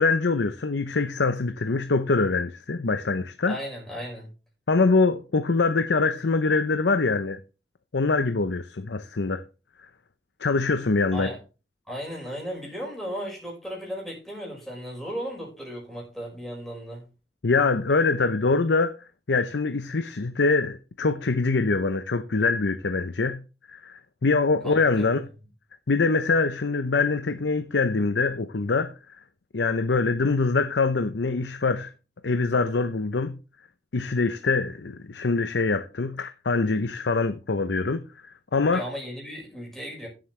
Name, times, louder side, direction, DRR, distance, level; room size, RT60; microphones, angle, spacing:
voice 1, 0.0-3.6 4.7-7.4 7.9-9.4 10.4-11.3 17.4-19.0 19.3-23.4 23.7-25.3 25.9-28.9 29.5-31.9 32.2-33.4 33.9-38.0 38.5-38.8, left 3 dB, 85° left, 0.7 m, -24 dB
voice 2, 3.5-4.3 11.1-11.4 11.9-17.0 24.6-25.0 38.7-40.1, equal, ahead, 5.2 m, -35 dB
15.0 x 7.7 x 3.3 m
head